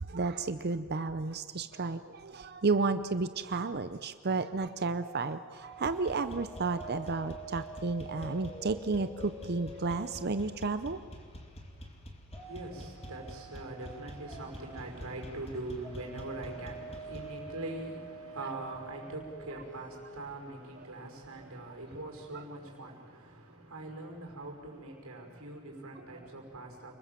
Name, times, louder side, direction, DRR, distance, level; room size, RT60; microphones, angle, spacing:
voice 1, 0.0-11.0 19.5-19.6 20.8-20.9 21.3-21.5 22.3-22.4 26.0-26.3, right 3 dB, 50° right, 0.7 m, -32 dB
sound 1, 4.9-11.1 12.3-20.3, right 3 dB, 10° left, 4.8 m, -48 dB
sound 2, 5.7-17.4, left 1 dB, 30° left, 2.7 m, -48 dB
voice 2, 12.4-27.0, right 2 dB, 80° right, 5.5 m, -42 dB
29.5 x 21.0 x 7.5 m
head